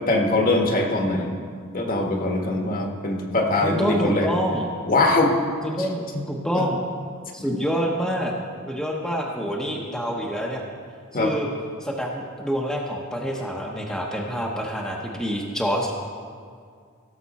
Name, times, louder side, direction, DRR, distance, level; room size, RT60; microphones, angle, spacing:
voice 1, 0.0-1.3 1.7-4.3 4.9-5.4 6.1-6.3 6.5-6.7 9.7-9.9 11.1-11.3, left 2 dB, 45° left, 2 dB, 1.3 m, -22 dB
voice 2, 3.6-4.7 5.6-6.8 7.3-8.3 8.6-10.6 11.1-11.5 11.8-15.9, equal, ahead, -2 dB, 0.9 m, -27 dB
17.0 x 6.9 x 4.2 m, 2.1 s
head